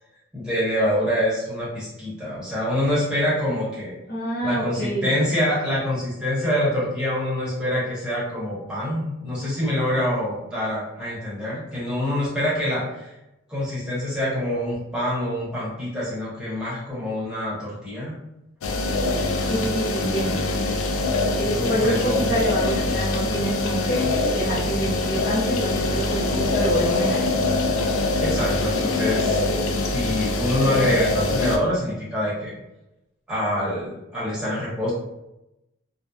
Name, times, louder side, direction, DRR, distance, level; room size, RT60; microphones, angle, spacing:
voice 1, 0.3-3.9 4.4-13.1 13.5-18.1 21.2-22.3 28.2-29.4 29.9-32.5 33.3-34.9, left 1 dB, 5° right, -9 dB, 0.9 m, -25 dB
voice 2, 4.1-5.1 19.5-20.4 21.4-27.3, right 1 dB, 45° left, -7 dB, 0.6 m, -27 dB
sound 1, 18.6-31.6, left 2 dB, 85° left, 0.4 m, -24 dB
2.7 x 2.0 x 2.3 m, 0.91 s
head